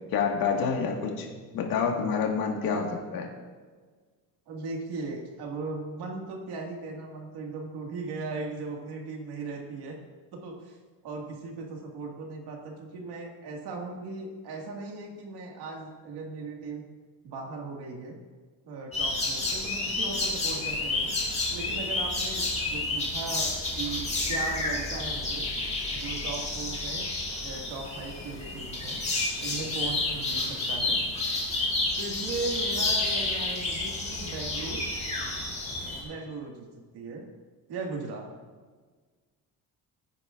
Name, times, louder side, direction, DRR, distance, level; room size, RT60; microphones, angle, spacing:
voice 1, 0.1-1.3 1.5-2.9 3.1-3.3, left 6 dB, 60° left, 1 dB, 1.8 m, -27 dB
voice 2, 4.5-10.0 10.3-10.8 11.0-16.8 17.2-18.2 18.7-21.1 21.5-25.5 25.9-27.1 27.4-29.0 29.4-31.0 32.0-34.9 36.0-36.7 36.9-37.2 37.7-38.3, right 3 dB, 80° right, 0 dB, 2.1 m, -38 dB
sound 1, 18.9-36.0, left 2 dB, 15° left, 1.9 m, -30 dB
15.5 x 9.9 x 2.5 m, 1.4 s
cardioid pair, 175°, 38 cm